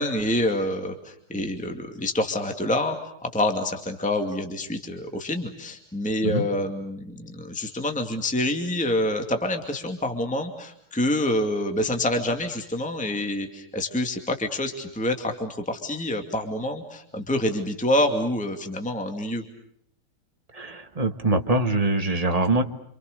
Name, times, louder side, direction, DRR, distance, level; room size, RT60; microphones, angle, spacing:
voice 1, 0.0-3.0 3.2-19.4, left 1 dB, 5° left, 5 dB, 2.2 m, -27 dB
voice 2, 20.5-22.6, right 2 dB, 20° right, 6 dB, 1.4 m, -23 dB
29.0 x 27.5 x 6.7 m, 0.67 s
omnidirectional pair, 2.3 m